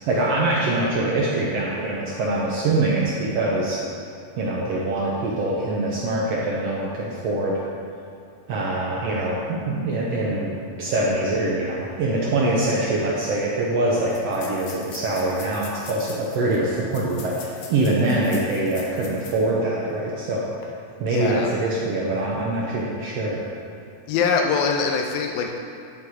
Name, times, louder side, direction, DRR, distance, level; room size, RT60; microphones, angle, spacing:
voice 1, 0.1-3.8 4.4-7.6 8.5-10.5 10.8-20.4 21.0-23.4, right 2 dB, 90° right, -5 dB, 1.3 m, -24 dB
sound 1, 13.0-13.1 13.3-13.4 14.1-19.5 19.9-20.0 20.5-20.6, left 5 dB, 70° left, 1.6 m, -43 dB
voice 2, 21.1-21.5 24.1-25.6, left 5 dB, 85° left, 2 dB, 2.5 m, -23 dB
11.0 x 5.8 x 4.8 m, 2.7 s
omnidirectional pair, 4.3 m